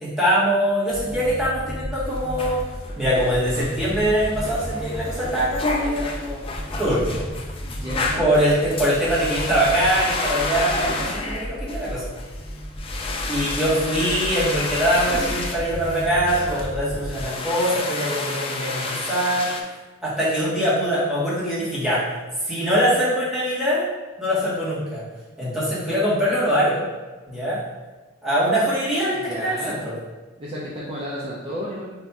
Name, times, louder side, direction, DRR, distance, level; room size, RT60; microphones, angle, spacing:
voice 1, 0.0-2.6 3.0-6.4 6.8-7.2 8.2-12.0 13.3-19.5 20.0-22.0 22.4-23.8 24.2-25.0 25.4-26.8 27.3-27.6 28.2-29.9, equal, ahead, -9 dB, 1.2 m, -22 dB
sound 1, 0.9-17.2, equal, 70° right, 1.4 m, -34 dB
sound 2, 2.0-19.6, left 3 dB, 25° left, 0.3 m, -31 dB
voice 2, 7.6-8.3 29.1-29.9 30.4-31.8, equal, 30° right, -7 dB, 0.6 m, -32 dB
3.5 x 2.6 x 4.1 m, 1.3 s
head